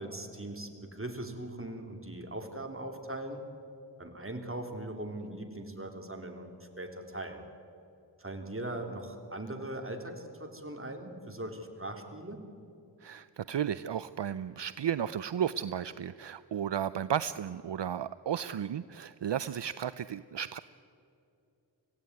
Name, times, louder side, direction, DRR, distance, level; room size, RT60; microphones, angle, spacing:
voice 1, 0.0-3.4 4.0-7.4 8.2-12.4, right 1 dB, 30° right, 4 dB, 3.0 m, -40 dB
voice 2, 13.0-20.6, right 9 dB, 70° right, 15 dB, 0.5 m, -34 dB
25.5 x 16.5 x 9.5 m, 2.7 s
wide cardioid pair, 55°, 44 cm